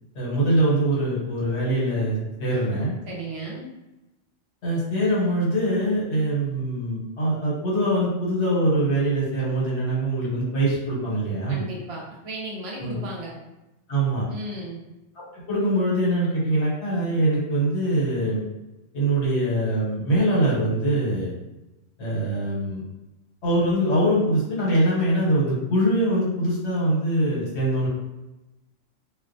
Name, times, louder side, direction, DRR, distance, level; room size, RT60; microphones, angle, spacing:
voice 1, 0.1-2.9 4.6-11.6 12.8-13.0 13.9-14.3 15.3-18.5 18.9-21.3 22.0-22.8 23.4-27.9, right 1 dB, 65° left, -5 dB, 1.1 m, -23 dB
voice 2, 3.0-3.7 11.5-13.3 14.3-14.8, right 1 dB, 65° right, -3 dB, 0.8 m, -35 dB
2.2 x 2.2 x 2.5 m, 0.98 s
omnidirectional pair, 1.3 m